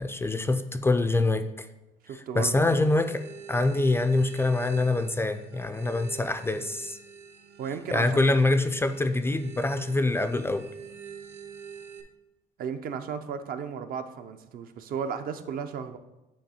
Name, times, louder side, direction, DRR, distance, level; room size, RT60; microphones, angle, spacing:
voice 1, 0.0-1.7 2.1-7.0 7.9-10.7, left 2 dB, 15° left, 9 dB, 0.3 m, -25 dB
voice 2, 2.0-2.5 7.6-8.4 12.6-16.0, right 7 dB, 60° right, 8 dB, 0.6 m, -34 dB
sound 1, 2.7-12.0, right 6 dB, 75° right, 0.9 m, -45 dB
8.6 x 3.0 x 4.2 m, 1.0 s
cardioid pair, 110°, 17 cm